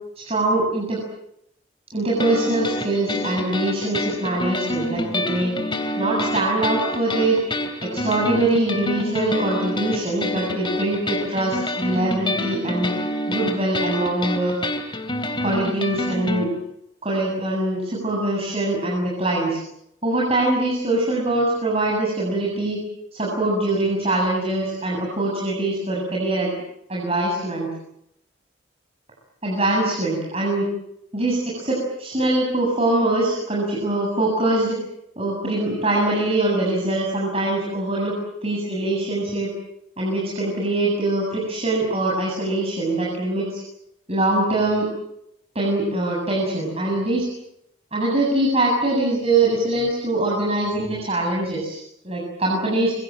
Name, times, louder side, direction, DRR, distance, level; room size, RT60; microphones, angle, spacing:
voice 1, 0.2-1.0 1.9-5.5 6.0-7.4 7.8-12.9 13.3-14.5 15.4-16.5 17.0-19.6 20.0-22.8 23.1-26.5 26.9-27.7 29.4-30.7 31.1-34.8 35.2-38.1 38.4-39.5 40.0-43.6 44.1-44.9 45.5-47.3 47.9-52.9, right 2 dB, 30° right, -3 dB, 7.7 m, -23 dB
sound 1, 2.2-16.4, left 1 dB, 25° left, 3.2 m, -27 dB
27.5 x 24.5 x 7.7 m, 0.79 s
head